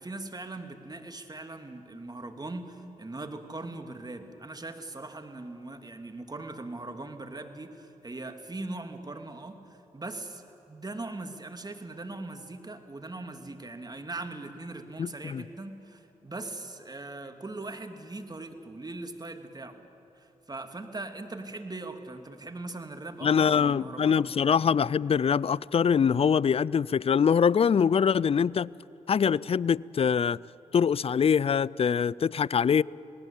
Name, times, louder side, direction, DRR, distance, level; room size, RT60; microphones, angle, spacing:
voice 1, 0.0-19.8 20.2-24.5, right 2 dB, 30° right, 2.6 m, -40 dB
voice 2, 15.0-15.4 23.2-28.7 29.1-30.4 30.7-32.8, left 7 dB, 45° left, 0.5 m, -24 dB
27.5 x 18.5 x 8.5 m
supercardioid pair, 45°, 14 cm